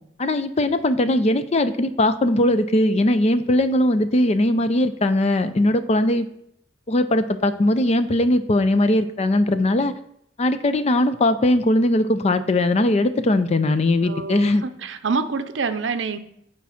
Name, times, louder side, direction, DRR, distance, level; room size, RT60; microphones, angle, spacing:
voice 1, 0.2-6.3 6.9-9.9 10.4-14.6, left 1 dB, 35° left, 11 dB, 0.5 m, -20 dB
voice 2, 14.0-16.2, right 4 dB, 75° right, 10 dB, 0.6 m, -26 dB
8.6 x 4.6 x 5.7 m, 0.74 s
head